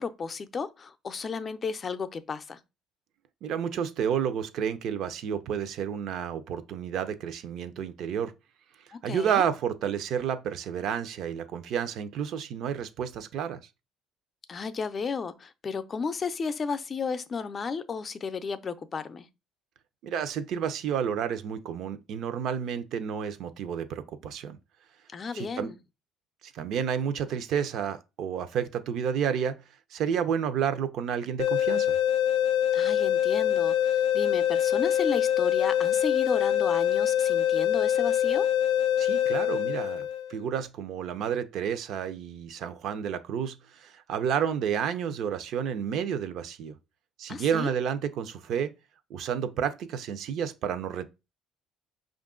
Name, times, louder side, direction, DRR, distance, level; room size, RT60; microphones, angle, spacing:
voice 1, 0.0-2.6 8.9-9.4 14.5-19.3 25.1-25.8 32.7-38.5 47.3-47.7, left 5 dB, 40° left, 0.5 m, -33 dB
voice 2, 3.4-8.3 9.0-13.6 20.0-24.6 25.3-25.7 26.4-29.6 29.9-32.0 39.0-46.8 47.2-48.7 49.1-51.0, right 8 dB, 65° right, 0.6 m, -30 dB
sound 1, 31.4-40.3, left 10 dB, 90° left, 0.4 m, -24 dB
5.2 x 2.5 x 3.7 m
supercardioid pair, 85°, 0 cm